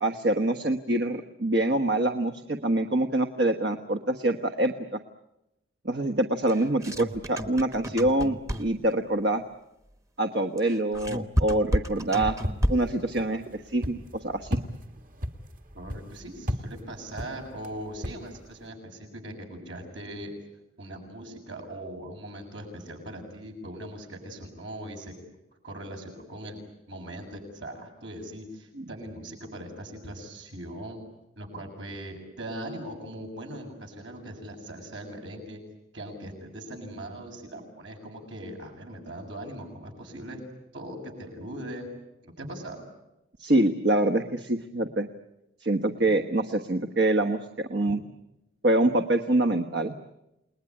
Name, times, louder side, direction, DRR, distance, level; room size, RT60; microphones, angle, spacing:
voice 1, 0.0-4.7 5.8-9.4 10.2-12.4 12.7-14.6 28.8-28.9 43.4-45.1 45.6-48.0 48.6-49.9, right 1 dB, 60° right, 7 dB, 1.3 m, -25 dB
sound 1, 6.5-8.9 10.6-13.0, equal, 15° right, 1.1 m, -30 dB
sound 2, 11.9-18.6, equal, 45° right, 1.7 m, -37 dB
voice 2, 15.7-20.3 20.8-25.1 25.6-26.6 26.9-31.0 31.4-35.6 35.9-40.4 40.7-41.9 42.2-42.8, right 1 dB, 75° right, 2 dB, 7.6 m, -40 dB
29.5 x 20.5 x 10.0 m, 0.92 s
head